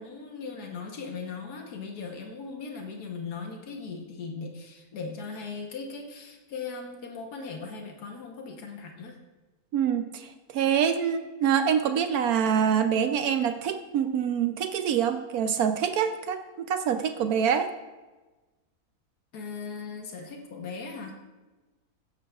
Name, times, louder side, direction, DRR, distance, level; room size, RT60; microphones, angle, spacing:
voice 1, 0.0-9.2 19.3-21.1, left 4 dB, 90° left, 2 dB, 1.6 m, -38 dB
voice 2, 9.7-17.7, right 8 dB, 75° right, 8 dB, 1.0 m, -25 dB
16.0 x 11.5 x 2.4 m, 1.2 s
omnidirectional pair, 1.6 m